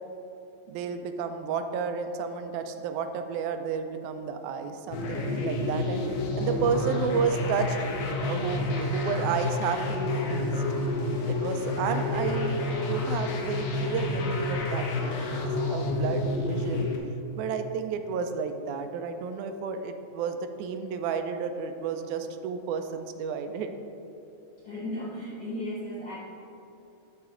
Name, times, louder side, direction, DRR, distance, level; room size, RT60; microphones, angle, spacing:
voice 1, 0.7-6.0 6.4-7.8 8.2-10.7 11.3-15.4 15.7-16.9 17.4-23.7, right 6 dB, 85° right, 7 dB, 2.0 m, -31 dB
sound 1, 4.9-17.0, left 2 dB, 80° left, 2.2 m, -29 dB
voice 2, 24.6-26.1, left 1 dB, 50° left, -9 dB, 1.3 m, -35 dB
10.5 x 4.2 x 3.7 m, 3.0 s
omnidirectional pair, 3.4 m